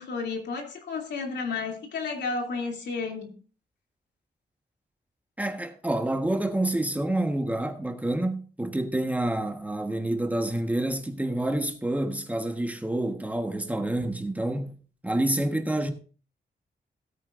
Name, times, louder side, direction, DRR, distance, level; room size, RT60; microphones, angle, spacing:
voice 1, 0.0-3.3, left 4 dB, 80° left, 2.8 m, -32 dB
voice 2, 5.4-14.8 15.0-15.9, right 1 dB, 10° right, 1.3 m, -28 dB
17.0 x 8.8 x 2.5 m
wide cardioid pair, 130°, 17 cm